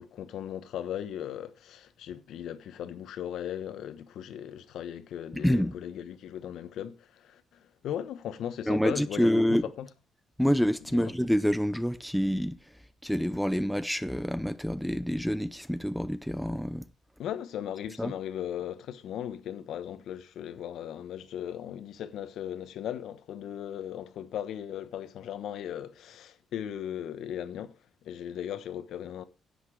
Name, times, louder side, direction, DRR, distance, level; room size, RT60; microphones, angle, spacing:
voice 1, 0.0-9.9 10.9-11.1 17.2-29.2, left 10 dB, 70° left, 1.1 m, -37 dB
voice 2, 5.3-5.7 8.7-9.7 10.4-12.6 13.0-16.8 18.0-18.1, equal, ahead, 0.5 m, -27 dB
10.5 x 8.3 x 4.8 m
cardioid pair, 155°, 0 cm